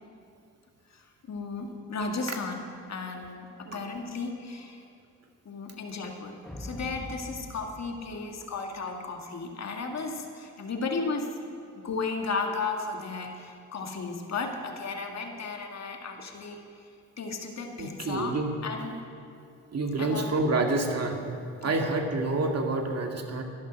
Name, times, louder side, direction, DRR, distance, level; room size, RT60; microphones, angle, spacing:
voice 1, 1.3-2.6 2.9-4.8 5.5-11.3 11.7-16.9 17.2-18.4 18.6-19.0 20.0-20.3 21.6-21.7, left 4 dB, 50° left, 2 dB, 2.2 m, -34 dB
sound 1, 6.4-8.9, left 1 dB, ahead, 1.4 m, -43 dB
voice 2, 17.8-18.5 19.7-21.2 21.6-23.4, right 2 dB, 45° right, 3 dB, 2.1 m, -28 dB
13.5 x 11.0 x 6.4 m, 2.6 s
supercardioid pair, 60°, 34 cm